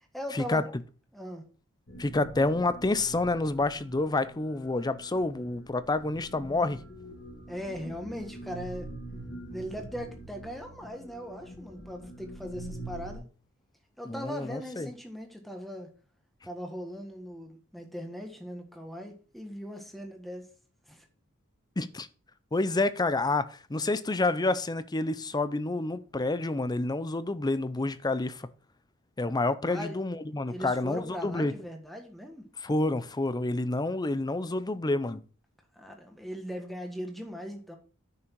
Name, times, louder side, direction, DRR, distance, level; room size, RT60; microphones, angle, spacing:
voice 1, 0.1-0.6 1.1-1.4 7.5-8.9 9.5-13.2 14.0-15.9 16.4-20.5 20.9-21.0 29.7-30.0 30.5-32.5 35.7-37.8, equal, ahead, 1.5 m, -39 dB
sound 1, 1.9-13.2, right 1 dB, 60° left, 3.5 m, -44 dB
voice 2, 2.0-6.8 14.1-14.9 21.8-22.1 22.5-28.5 29.2-31.5 32.6-35.2, left 2 dB, 20° left, 0.5 m, -28 dB
9.7 x 6.2 x 4.6 m
head